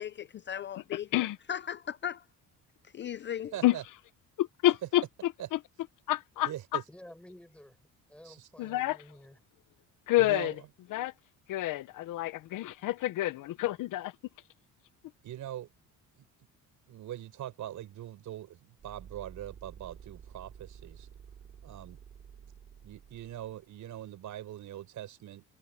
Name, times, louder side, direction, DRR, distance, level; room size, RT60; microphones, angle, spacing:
voice 1, 0.0-2.2 2.9-3.5, left 9 dB, 35° left, 0.4 m, -37 dB
voice 2, 3.5-3.8 5.4-5.5 6.4-6.8 8.2-8.5 10.2-10.7 15.2-15.7 16.1-16.5 16.9-21.1 21.6-22.0 22.8-25.4, right 12 dB, 65° right, 6.5 m, -42 dB
voice 3, 4.4-5.0 5.5-5.6 6.1-6.5 8.6-9.0 10.1-10.5 10.9-11.1 11.5-14.1, left 16 dB, 70° left, 0.9 m, -28 dB
voice 4, 6.9-9.4, left 1 dB, 5° left, 5.4 m, -52 dB
sound 1, 18.8-23.7, right 7 dB, 40° right, 4.0 m, -51 dB
cardioid pair, 150°, 33 cm